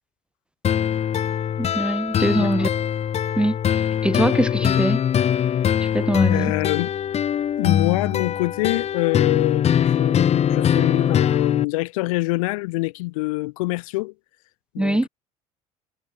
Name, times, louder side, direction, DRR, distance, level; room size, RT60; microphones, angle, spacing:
sound 1, 0.6-11.6, left 9 dB, 35° left, 1.1 m, -22 dB
voice 1, 1.6-2.7 3.4-5.0 5.8-6.5 14.8-15.1, right 1 dB, 5° right, 0.7 m, -23 dB
voice 2, 6.3-6.9 7.6-14.1 14.7-15.1, left 23 dB, 65° left, 1.3 m, -25 dB
figure-of-eight pair, 60°, 19 cm